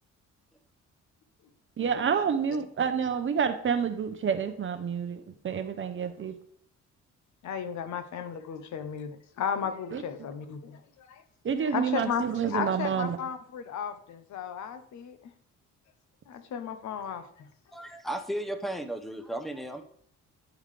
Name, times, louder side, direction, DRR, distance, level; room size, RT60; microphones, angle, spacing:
voice 1, 1.8-6.4 9.9-10.0 11.4-13.2, right 7 dB, 40° right, 0.7 m, -28 dB
voice 2, 7.4-11.2 11.7-15.3 16.3-17.5, left 7 dB, 70° left, 0.8 m, -35 dB
voice 3, 17.7-19.8, right 1 dB, ahead, 0.7 m, -34 dB
10.0 x 3.6 x 3.3 m
cardioid pair, 90°, 30 cm